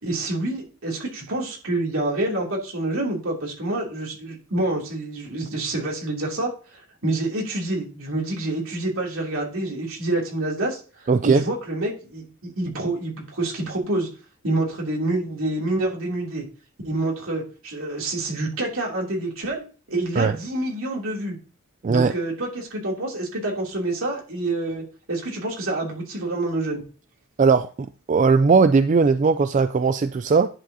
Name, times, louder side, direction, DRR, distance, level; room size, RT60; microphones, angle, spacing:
voice 1, 0.0-14.1 14.4-16.4 16.8-19.6 19.9-21.4 21.9-26.8, right 2 dB, 70° right, -2 dB, 3.0 m, -27 dB
voice 2, 11.1-11.4 20.2-20.4 21.8-22.1 27.4-27.7 28.1-30.5, right 4 dB, 35° right, 11 dB, 0.3 m, -18 dB
10.5 x 6.9 x 2.8 m, 0.37 s
head